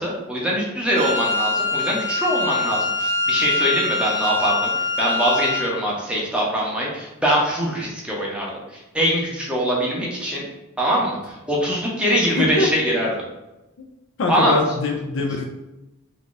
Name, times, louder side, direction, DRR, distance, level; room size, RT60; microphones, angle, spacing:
voice 1, 0.0-4.7 5.0-10.4 10.8-13.1 14.3-14.6, equal, 5° right, -4 dB, 0.7 m, -23 dB
Wind instrument woodwind instrument, 0.9-5.8, left 3 dB, 35° right, 0.3 m, -23 dB
voice 2, 12.4-12.7 14.2-15.4, left 2 dB, 55° left, 1 dB, 0.4 m, -23 dB
2.6 x 2.4 x 3.8 m, 0.98 s
head